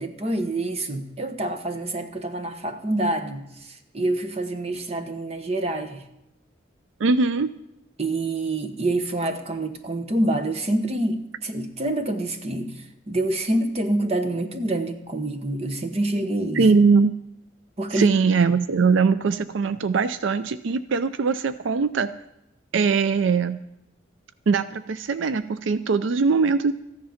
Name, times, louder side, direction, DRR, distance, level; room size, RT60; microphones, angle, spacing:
voice 1, 0.0-6.0 8.0-16.7 17.8-18.1, right 1 dB, 30° right, 7 dB, 1.0 m, -27 dB
voice 2, 7.0-7.5 16.5-17.1 17.9-22.1 22.7-23.6 24.5-26.7, right 4 dB, 80° right, 13 dB, 0.4 m, -21 dB
14.0 x 10.5 x 5.7 m, 0.85 s
head